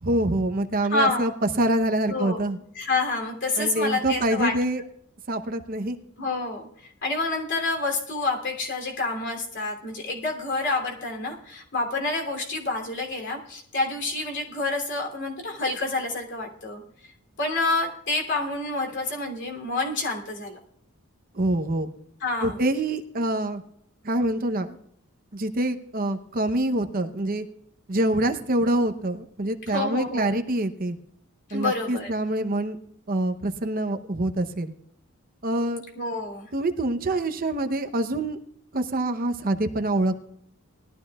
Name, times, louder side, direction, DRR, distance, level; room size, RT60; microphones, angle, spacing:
voice 1, 0.0-1.3 1.6-2.6 3.6-4.8 5.3-6.0 21.3-21.9 22.4-23.6 24.0-24.8 25.3-27.4 27.9-31.0 31.5-32.8 33.1-34.7 35.4-35.8 36.5-38.4 38.7-40.2, right 1 dB, 40° right, 7 dB, 0.8 m, -25 dB
voice 2, 0.9-1.3 2.1-2.4 2.7-4.5 6.2-17.1 17.4-20.6 22.2-22.6 29.7-30.3 31.5-32.1 35.9-36.5, left 2 dB, 55° left, 1 dB, 2.9 m, -28 dB
20.0 x 13.0 x 2.4 m, 0.70 s
head